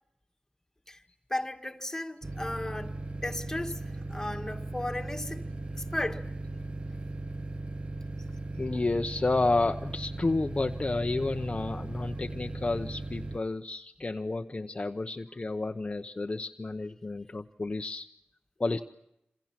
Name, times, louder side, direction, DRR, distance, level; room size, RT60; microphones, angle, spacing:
voice 1, 1.3-5.4 5.9-6.2, left 1 dB, 15° left, 1.8 m, -35 dB
sound 1, 2.2-13.4, right 2 dB, 30° right, 1.0 m, -38 dB
voice 2, 8.6-18.1 18.6-18.8, left 3 dB, 30° left, 0.9 m, -31 dB
27.5 x 27.5 x 6.0 m
wide cardioid pair, 105°, 4 cm